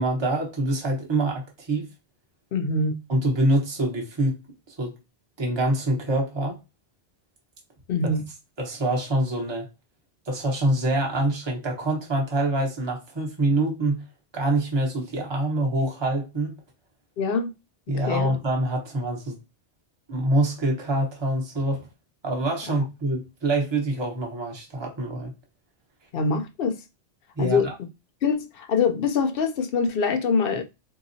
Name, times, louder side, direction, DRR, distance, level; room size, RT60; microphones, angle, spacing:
voice 1, 0.0-1.9 3.1-4.4 4.8-4.9 5.4-6.6 8.6-9.7 10.3-14.0 14.3-16.5 17.9-19.4 20.1-21.8 22.2-25.3 27.4-27.7, right 1 dB, 25° right, 0.9 m, -25 dB
voice 2, 2.5-3.0 7.9-8.3 17.2-17.5 17.9-18.3 26.1-26.8 27.4-27.7 28.2-30.6, left 4 dB, 65° left, 0.7 m, -24 dB
3.9 x 2.8 x 2.6 m
omnidirectional pair, 1.1 m